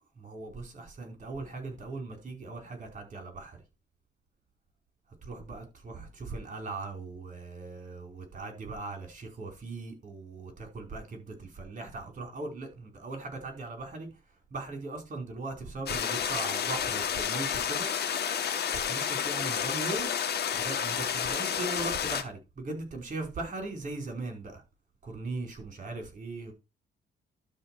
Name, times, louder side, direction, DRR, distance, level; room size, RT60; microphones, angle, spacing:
voice 1, 0.2-3.6 5.2-14.2 14.5-17.9 18.7-20.1 20.5-24.6 25.0-26.5, right 3 dB, 40° right, 5.1 m, -39 dB
sound 1, 15.9-22.2, left 8 dB, 55° left, 1.8 m, -30 dB
12.0 x 4.3 x 6.3 m
cardioid pair, 90°, 20 cm